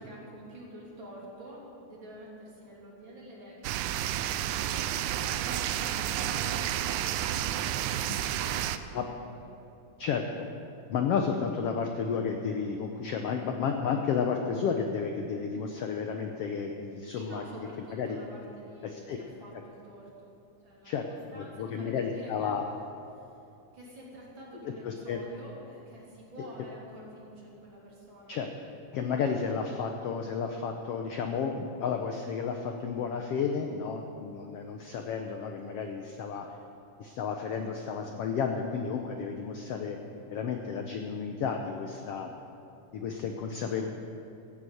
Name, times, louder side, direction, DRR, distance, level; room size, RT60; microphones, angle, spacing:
voice 1, 0.0-4.3 4.8-6.9 7.3-9.0 9.3-9.7 17.1-20.3 20.6-21.0 21.3-22.5 23.1-23.4 23.7-28.4, right 1 dB, 40° right, -4 dB, 3.3 m, -48 dB
sound 1, 3.6-8.8, right 11 dB, 80° right, 1.8 m, -31 dB
voice 2, 10.0-10.4 10.9-17.4 17.9-18.2 18.8-19.2 20.8-21.0 21.3-22.6 24.8-25.2 28.3-28.5 28.9-36.5 37.0-40.0 40.3-42.3 42.9-43.9, left 6 dB, 80° left, 4 dB, 1.3 m, -32 dB
14.5 x 9.0 x 7.8 m, 2.8 s
omnidirectional pair, 3.7 m